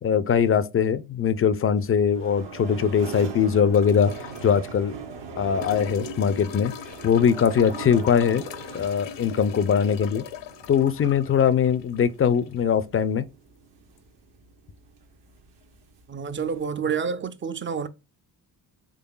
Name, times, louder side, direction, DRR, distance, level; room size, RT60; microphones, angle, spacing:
voice 1, 0.0-4.1 4.4-5.0 5.4-6.7 7.0-8.4 8.7-10.2 10.7-13.3, left 7 dB, 30° left, 0.4 m, -21 dB
sound 1, 1.8-16.7, right 5 dB, 60° right, 1.0 m, -41 dB
sound 2, 3.7-4.6 5.6-12.6 14.0-14.1, left 10 dB, 65° left, 0.7 m, -41 dB
voice 2, 16.1-17.9, right 6 dB, 25° right, 0.5 m, -28 dB
3.8 x 3.3 x 2.3 m
supercardioid pair, 55°, 47 cm